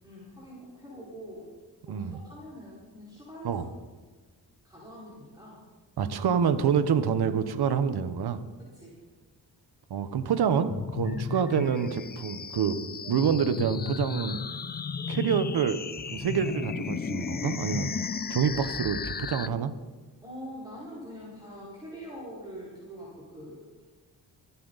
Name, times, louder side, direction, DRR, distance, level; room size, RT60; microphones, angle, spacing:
voice 1, 0.0-1.4 1.9-3.6 4.6-5.6 8.6-8.9 20.2-23.6, equal, 10° right, -9 dB, 5.2 m, -44 dB
voice 2, 1.9-2.2 3.4-3.6 6.0-8.4 9.9-12.8 13.1-14.4 15.1-15.8 16.1-17.9 18.3-19.7, right 7 dB, 70° right, 11 dB, 1.1 m, -27 dB
sound 1, 10.7-19.5, left 6 dB, 25° left, 0.4 m, -34 dB
25.0 x 8.5 x 4.1 m, 1.4 s
cardioid pair, 95°, 41 cm